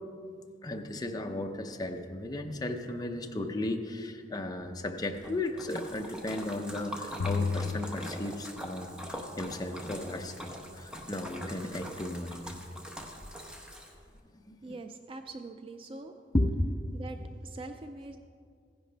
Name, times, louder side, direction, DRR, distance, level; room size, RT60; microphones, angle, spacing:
voice 1, 0.6-9.0 9.4-12.5 14.5-14.8 16.3-16.5, left 1 dB, 20° left, 4 dB, 0.6 m, -35 dB
Splash splatter, 5.0-14.2, equal, 5° right, 0.9 m, -43 dB
sound 1, 7.2-9.0, left 4 dB, 85° left, 0.5 m, -33 dB
voice 2, 14.6-16.1 16.9-18.2, right 3 dB, 30° right, 7 dB, 0.4 m, -43 dB
15.0 x 10.5 x 3.3 m, 2.3 s
head